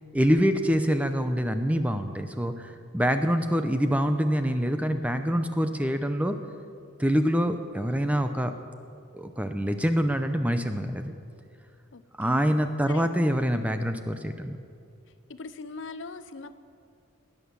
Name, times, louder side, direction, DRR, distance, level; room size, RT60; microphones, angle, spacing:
voice 1, 0.1-6.4 7.0-8.5 9.1-11.1 12.2-14.6, equal, 5° right, 8 dB, 0.6 m, -25 dB
voice 2, 11.9-12.4 12.9-13.1 15.3-16.6, left 3 dB, 55° left, 12 dB, 0.6 m, -41 dB
19.0 x 9.5 x 6.9 m, 2.5 s
head